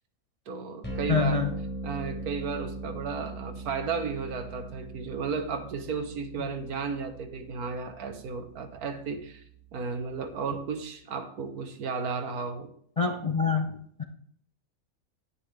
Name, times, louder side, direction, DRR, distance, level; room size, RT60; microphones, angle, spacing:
voice 1, 0.5-1.4 1.8-9.4 9.7-12.7, right 5 dB, 85° right, 7 dB, 1.6 m, -34 dB
sound 1, 0.8-10.9, right 2 dB, 5° left, 4.4 m, -41 dB
voice 2, 1.1-1.5 6.4-6.5 13.0-14.0, left 5 dB, 35° left, 3 dB, 0.6 m, -26 dB
10.0 x 9.8 x 3.3 m, 0.63 s
omnidirectional pair, 1.6 m